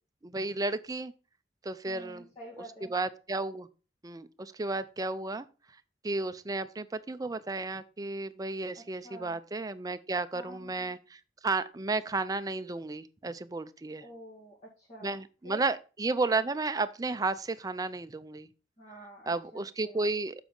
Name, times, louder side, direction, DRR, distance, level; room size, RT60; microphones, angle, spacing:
voice 1, 0.2-1.1 1.6-2.3 2.9-3.7 4.0-5.5 6.0-14.0 15.0-18.5 19.3-20.3, right 3 dB, 20° right, 0.5 m, -33 dB
voice 2, 1.8-2.9 8.7-9.4 10.3-11.0 14.0-15.2 15.4-15.6 18.8-20.1, right 1 dB, 35° left, 2.0 m, -49 dB
7.4 x 5.0 x 5.2 m
head